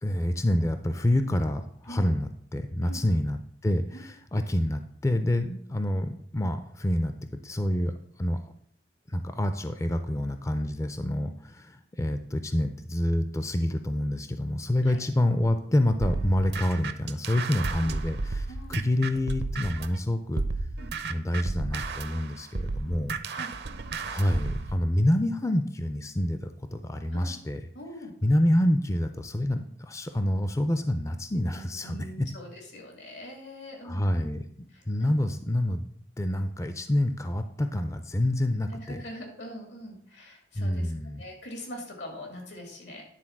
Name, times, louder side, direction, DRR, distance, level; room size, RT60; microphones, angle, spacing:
voice 1, 0.0-7.1 7.4-7.9 8.2-8.4 9.1-20.4 21.1-23.1 24.1-27.6 28.2-32.3 33.8-35.8 36.2-39.0 40.6-41.2, left 1 dB, 15° left, 8 dB, 0.4 m, -27 dB
sound 1, 16.0-20.0 20.4-24.7, right 3 dB, 65° right, 0.6 m, -33 dB
voice 2, 18.5-18.8 20.8-21.0 23.3-23.5 27.1-27.4 27.7-28.2 31.5-34.3 34.7-35.1 38.9-43.0, equal, 80° left, 2 dB, 2.4 m, -43 dB
10.0 x 3.9 x 5.9 m, 0.67 s
head